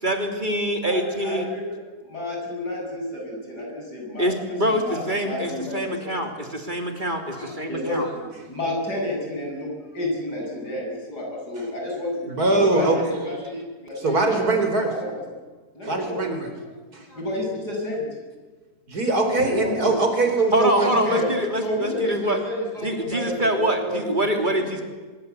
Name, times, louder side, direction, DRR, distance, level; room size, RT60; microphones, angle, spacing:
voice 1, 0.0-1.4 4.2-8.1 20.5-22.4 22.8-24.8, equal, 30° right, 4 dB, 3.2 m, -25 dB
voice 2, 0.8-1.7 2.0-4.3 4.6-6.1 7.3-14.5 15.0-15.1 15.7-16.2 17.1-18.0 19.4-19.9 21.0-21.3 21.6-24.8, left 1 dB, 80° left, -1 dB, 8.3 m, -30 dB
voice 3, 12.2-13.0 14.0-14.9 15.8-16.5 16.9-17.1 18.9-21.2, right 3 dB, 70° right, 5 dB, 4.8 m, -22 dB
24.5 x 23.0 x 8.3 m, 1.4 s
omnidirectional pair, 1.7 m